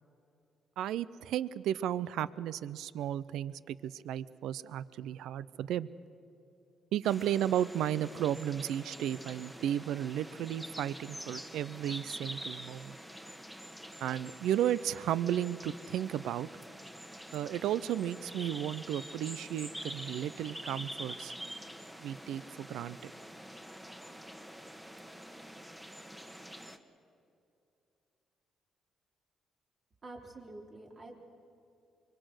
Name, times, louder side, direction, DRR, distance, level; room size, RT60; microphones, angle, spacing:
voice 1, 0.8-5.9 6.9-12.9 14.0-16.5 17.3-21.3 22.0-23.1, right 11 dB, 85° right, 18 dB, 0.5 m, -34 dB
sound 1, 7.0-26.8, equal, 5° right, 1.4 m, -46 dB
voice 2, 30.0-31.1, right 2 dB, 40° right, 0 dB, 3.8 m, -47 dB
25.0 x 23.0 x 6.4 m, 2.6 s
cardioid pair, 90°, 0 cm